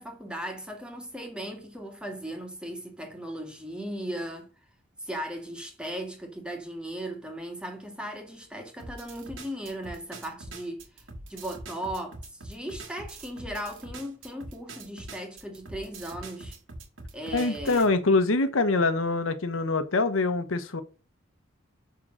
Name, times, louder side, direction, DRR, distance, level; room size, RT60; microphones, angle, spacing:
voice 1, 0.0-4.5 5.0-11.0 11.3-16.6 17.1-17.9, right 1 dB, 5° right, 2.1 m, -37 dB
sound 1, 8.8-17.9, right 2 dB, 70° right, 2.2 m, -43 dB
voice 2, 17.3-20.8, left 3 dB, 85° left, 1.0 m, -24 dB
10.5 x 3.8 x 6.3 m
head